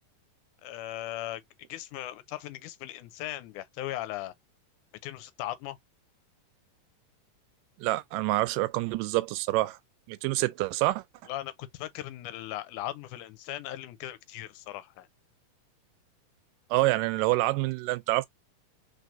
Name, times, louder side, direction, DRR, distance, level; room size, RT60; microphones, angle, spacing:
voice 1, 0.6-4.3 5.0-5.8 11.3-15.1, left 14 dB, 80° left, 2.0 m, -38 dB
voice 2, 7.8-9.8 10.1-11.0 16.7-18.3, right 18 dB, 90° right, 2.2 m, -27 dB
4.7 x 4.0 x 2.5 m
omnidirectional pair, 3.7 m